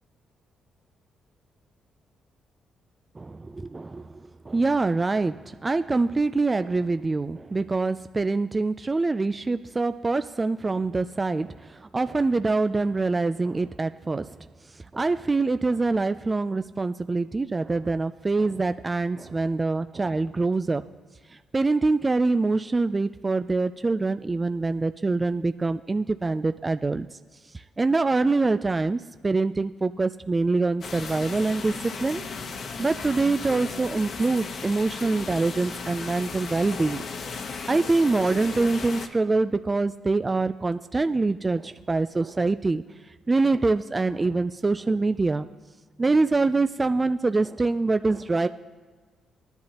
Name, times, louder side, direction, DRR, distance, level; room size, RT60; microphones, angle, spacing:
voice 1, 3.2-4.1 4.5-11.7 11.9-14.4 14.9-20.8 21.5-27.1 27.8-31.7 32.0-32.2 32.8-37.0 37.7-42.8 43.3-45.5 46.0-48.5, right 3 dB, 25° right, 10 dB, 0.3 m, -24 dB
sound 1, 30.8-39.1, left 5 dB, 60° left, 1.1 m, -36 dB
19.0 x 10.5 x 2.9 m, 1.4 s
supercardioid pair, 65°, 0 cm